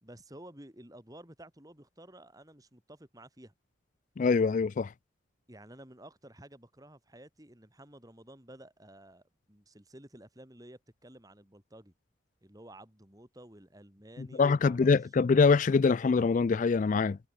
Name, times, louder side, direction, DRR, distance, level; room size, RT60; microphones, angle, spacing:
voice 1, 0.0-3.5 5.5-11.9 12.4-14.9, right 1 dB, 20° right, 3.1 m, -52 dB
voice 2, 4.2-4.9 14.4-17.2, left 4 dB, 40° left, 0.3 m, -24 dB
head